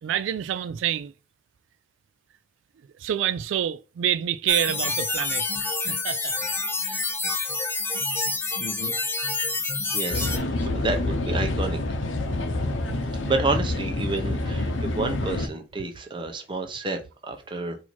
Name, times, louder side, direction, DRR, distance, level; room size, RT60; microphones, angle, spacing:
voice 1, 0.0-1.1 3.0-5.5 5.8-6.3 6.8-7.1 12.9-13.0, right 10 dB, 85° right, 0.3 m, -27 dB
sound 1, 4.5-10.4, left 3 dB, 10° left, 0.5 m, -28 dB
voice 2, 8.6-8.9 9.9-11.8 13.2-17.8, right 2 dB, 25° right, 0.8 m, -30 dB
sound 2, 10.1-15.5, left 2 dB, 90° left, 0.7 m, -27 dB
4.4 x 2.8 x 4.3 m
head